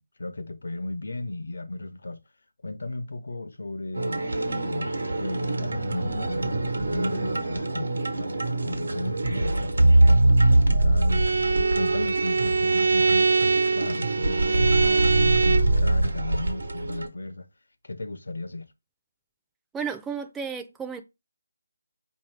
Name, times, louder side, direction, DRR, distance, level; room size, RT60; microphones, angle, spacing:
voice 1, 0.0-2.2 2.6-11.3 11.7-13.3 13.7-17.5 17.8-18.7, left 2 dB, 75° left, 0.7 m, -35 dB
sound 1, 3.9-17.1, right 2 dB, 90° right, 1.0 m, -24 dB
Bowed string instrument, 11.1-15.8, right 4 dB, 70° right, 0.4 m, -23 dB
voice 2, 19.7-21.0, right 6 dB, 5° right, 0.4 m, -33 dB
4.8 x 2.7 x 3.2 m
figure-of-eight pair, 165°, 0 cm